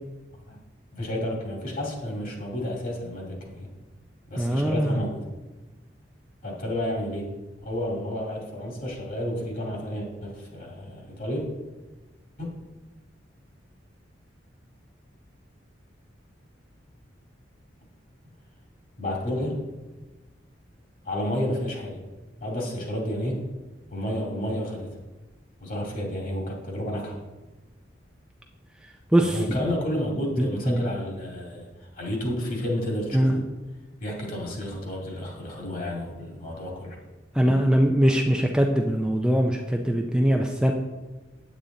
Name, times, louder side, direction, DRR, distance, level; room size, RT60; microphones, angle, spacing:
voice 1, 0.9-3.7 4.3-5.2 6.4-7.3 7.6-11.4 12.4-12.5 19.0-19.6 21.0-22.0 22.4-23.4 23.9-24.9 25.6-27.2 29.2-31.7 31.9-33.4 34.0-37.0, equal, 45° left, -1 dB, 2.3 m, -31 dB
voice 2, 4.4-5.0 29.1-29.6 30.4-30.8 33.1-33.3 37.3-40.7, equal, 5° right, 2 dB, 0.5 m, -22 dB
8.5 x 8.4 x 3.8 m, 1.2 s
head